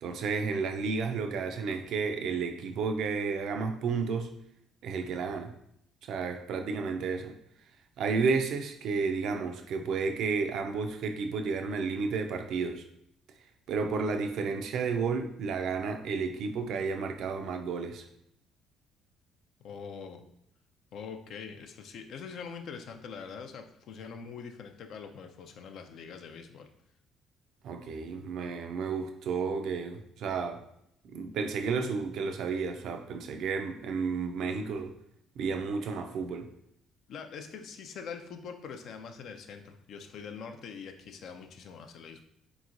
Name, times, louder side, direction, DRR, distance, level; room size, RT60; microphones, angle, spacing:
voice 1, 0.0-4.3 4.8-5.5 6.1-7.4 8.0-12.8 13.7-18.0 27.6-30.6 31.0-34.9 35.4-36.5, right 5 dB, 65° right, 0.4 m, -32 dB
voice 2, 19.6-20.2 20.9-26.7 37.1-42.2, left 6 dB, 65° left, 0.4 m, -43 dB
3.6 x 3.0 x 2.5 m
hypercardioid pair, 60°, 0 cm